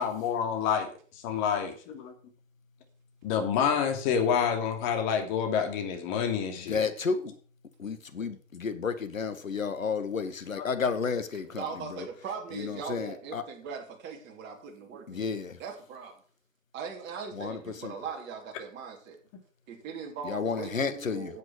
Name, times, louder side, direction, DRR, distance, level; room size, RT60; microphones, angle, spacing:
voice 1, 0.0-2.1 3.2-6.8 10.6-10.7, left 7 dB, 35° left, 2.7 m, -28 dB
voice 2, 6.7-7.4 7.8-11.6 11.9-12.0 12.5-13.4 15.1-15.6 17.3-17.9 20.2-21.3, left 5 dB, 85° left, 1.8 m, -32 dB
voice 3, 11.6-15.3 15.6-16.1 16.7-19.2 19.7-21.4, right 5 dB, 30° right, 3.1 m, -40 dB
10.0 x 7.8 x 6.2 m
hypercardioid pair, 125°, 39 cm